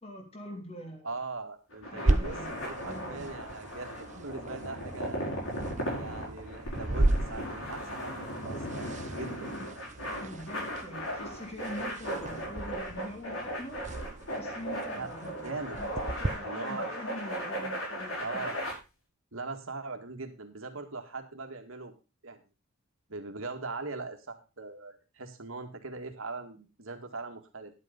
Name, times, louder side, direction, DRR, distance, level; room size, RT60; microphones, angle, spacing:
voice 1, 0.0-1.2 1.9-3.3 9.5-9.7 10.2-13.8 14.4-18.2, left 1 dB, 30° left, 3 dB, 3.0 m, -44 dB
voice 2, 1.0-5.3 5.9-8.9 9.1-9.6 14.9-15.1 15.4-15.8 16.4-16.9 18.2-18.6 19.3-21.9 22.2-22.4 23.1-27.7, right 3 dB, 75° right, 5 dB, 2.0 m, -40 dB
sound 1, 1.7-18.7, equal, 75° left, 6.6 m, -37 dB
sound 2, 2.1-16.3, right 1 dB, 35° right, 0.8 m, -35 dB
11.5 x 8.1 x 5.2 m, 0.30 s
head